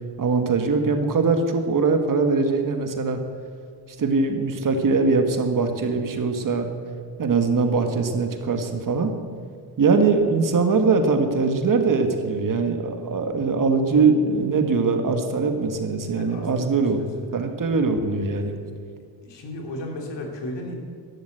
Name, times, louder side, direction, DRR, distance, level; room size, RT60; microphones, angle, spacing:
voice 1, 0.2-3.2 4.0-6.7 7.2-9.1 9.8-17.0 17.3-18.5, right 4 dB, 45° right, 6 dB, 1.6 m, -22 dB
voice 2, 16.1-17.3 18.4-18.6 19.2-20.7, left 1 dB, 65° left, 2 dB, 3.1 m, -35 dB
12.0 x 11.5 x 8.0 m, 2.1 s
cardioid pair, 115°, 45 cm